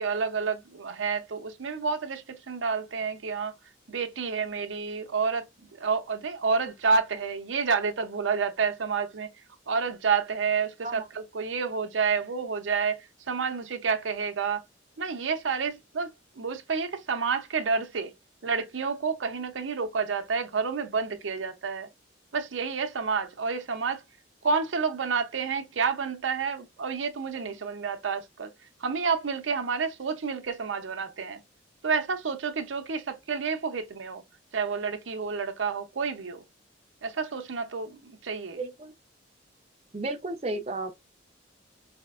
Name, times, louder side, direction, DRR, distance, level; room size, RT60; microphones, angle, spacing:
voice 1, 0.0-3.5 3.9-5.4 5.7-9.3 9.7-13.0 13.3-14.6 15.0-16.1 16.4-18.1 18.4-21.9 22.3-24.0 24.4-28.5 28.8-31.4 31.8-34.2 34.5-36.4 37.0-38.6, right 5 dB, 85° right, 0.6 m, -29 dB
voice 2, 38.6-38.9 39.9-40.9, right 2 dB, 30° right, 0.5 m, -33 dB
4.2 x 2.7 x 2.4 m
head